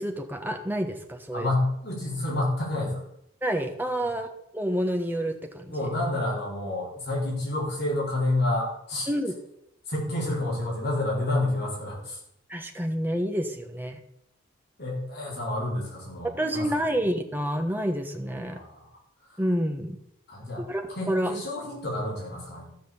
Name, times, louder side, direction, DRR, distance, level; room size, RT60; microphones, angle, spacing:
voice 1, 0.0-1.5 3.4-5.7 9.1-9.3 12.5-14.0 16.2-18.6 19.4-20.0 20.6-20.8 21.1-21.3, equal, 10° right, 4 dB, 1.1 m, -28 dB
voice 2, 1.3-3.0 4.0-4.1 5.7-9.1 9.9-12.2 14.8-16.7 18.5-18.8 19.3-19.4 20.3-20.6 20.9-22.7, left 2 dB, 50° left, -5 dB, 4.5 m, -29 dB
14.5 x 6.1 x 7.1 m, 0.77 s
head